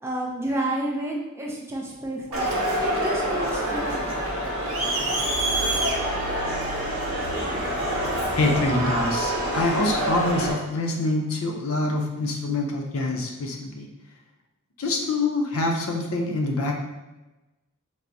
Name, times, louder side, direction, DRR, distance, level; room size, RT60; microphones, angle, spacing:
voice 1, 0.0-2.5 2.8-4.1, right 1 dB, 10° right, -2 dB, 0.3 m, -30 dB
Crowd, 2.3-10.5, right 1 dB, 70° right, 0.8 m, -26 dB
voice 2, 8.4-13.9 14.8-16.7, left 2 dB, 75° left, 2 dB, 0.5 m, -25 dB
4.5 x 2.0 x 2.6 m, 1.1 s
head